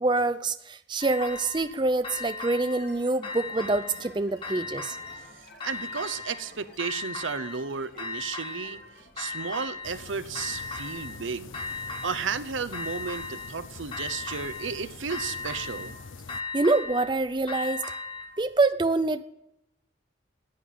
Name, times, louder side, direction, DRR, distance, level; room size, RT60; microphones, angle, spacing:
voice 1, 0.0-5.0 16.5-17.8 18.4-19.2, right 3 dB, 25° right, 11 dB, 0.5 m, -26 dB
sound 1, 1.0-1.7 2.0-2.9 3.2-4.1 4.4-5.3 5.6-6.5 6.8-7.6 8.0-8.8 9.2-10.0 10.4-11.2 11.5-12.4 12.7-13.6 13.9-14.8 15.1-16.0 16.3-18.3, left 3 dB, 25° left, 1.7 m, -37 dB
sound 2, 2.7-11.0, left 1 dB, 55° left, 3.1 m, -53 dB
voice 2, 5.6-8.8 9.2-11.7 12.0-15.9, right 5 dB, 80° right, 14 dB, 0.8 m, -33 dB
sound 3, 9.8-16.4, left 4 dB, 90° left, 0.7 m, -45 dB
15.0 x 9.3 x 8.5 m, 0.88 s
head